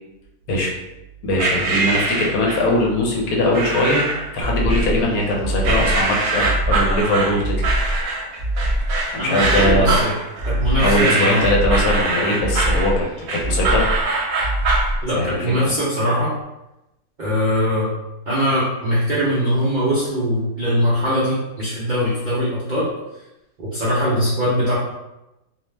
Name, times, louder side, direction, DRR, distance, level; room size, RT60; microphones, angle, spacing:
voice 1, 1.2-4.0 4.3-7.5 9.1-10.0 10.8-13.1 13.3-13.9 15.1-15.4 15.6-15.7, left 1 dB, 75° left, -2 dB, 1.1 m, -20 dB
sound 1, 1.4-2.7 3.5-4.3 4.7-5.3 5.6-14.9, right 3 dB, 75° right, 1.0 m, -23 dB
sound 2, 4.4-5.0 5.4-6.0 6.4-7.0 7.4-8.0 8.4-9.0 9.4-10.0 10.4-11.0 11.4-12.0 12.4-13.0 13.4-14.0 14.4-15.0, right 1 dB, 50° left, 0.3 m, -22 dB
voice 2, 9.2-10.1 10.5-11.4 15.0-16.3 17.2-17.9 18.3-22.9 23.6-24.7, equal, 55° right, -9 dB, 0.5 m, -21 dB
2.7 x 2.0 x 3.2 m, 0.94 s
omnidirectional pair, 1.6 m